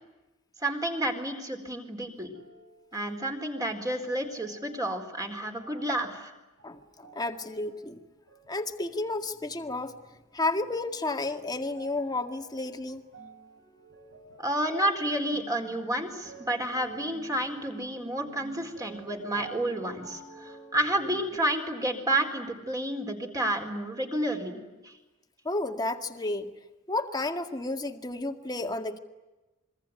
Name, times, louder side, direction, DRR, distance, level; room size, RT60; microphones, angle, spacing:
voice 1, 0.6-2.3 2.9-6.3 14.4-24.9, right 1 dB, 15° right, 4 dB, 4.3 m, -30 dB
sound 1, 2.3-3.3 3.9-4.9 5.6-6.2 6.6-7.9 8.3-9.1 9.7-10.2 10.6-21.4, right 3 dB, 55° right, 6.5 m, -50 dB
voice 2, 6.6-8.0 8.5-10.0 10.3-13.1 25.4-26.5 26.9-29.0, left 2 dB, 20° left, 5 dB, 2.0 m, -32 dB
26.5 x 23.5 x 9.5 m, 1.1 s
head